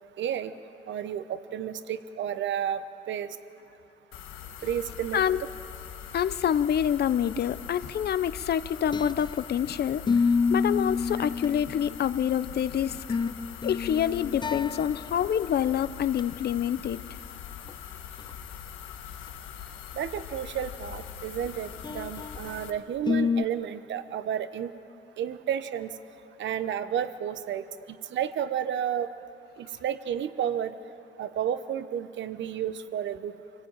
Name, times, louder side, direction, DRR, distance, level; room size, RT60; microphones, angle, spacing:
voice 1, 0.2-0.5 0.9-3.4 4.6-5.2 19.9-24.7 25.2-25.9 26.4-27.7 28.1-29.1 29.6-30.8 31.2-33.4, right 9 dB, 70° right, 12 dB, 1.1 m, -31 dB
sound 1, 4.1-22.7, left 9 dB, 90° left, 1.4 m, -42 dB
voice 2, 6.1-10.0 10.5-13.0 13.6-17.0, left 9 dB, 55° left, 15 dB, 0.7 m, -27 dB
sound 2, 8.7-9.6 10.1-12.2 12.8-15.3 15.6-15.7 16.1-16.2 17.7-17.8 18.2-18.3 21.8-22.6 23.1-23.4, left 5 dB, 20° left, 0.5 m, -28 dB
24.5 x 16.5 x 9.1 m, 2.5 s
cardioid pair, 90°, 20 cm